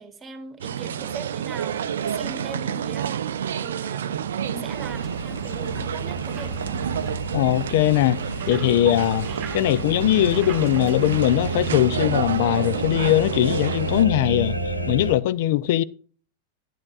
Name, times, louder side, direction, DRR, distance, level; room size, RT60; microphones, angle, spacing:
voice 1, 0.0-6.6 15.6-15.7, right 4 dB, 20° right, 1.4 m, -40 dB
sound 1, 0.6-14.0, right 9 dB, 65° right, 0.4 m, -30 dB
sound 2, 4.7-15.1, right 1 dB, 90° right, 0.8 m, -31 dB
sound 3, 4.9-11.9, right 9 dB, 40° right, 1.0 m, -44 dB
voice 2, 7.3-8.2 8.5-9.3 9.5-14.6 14.9-15.8, left 13 dB, 50° left, 0.4 m, -20 dB
11.5 x 10.5 x 2.5 m
figure-of-eight pair, 90°, 0 cm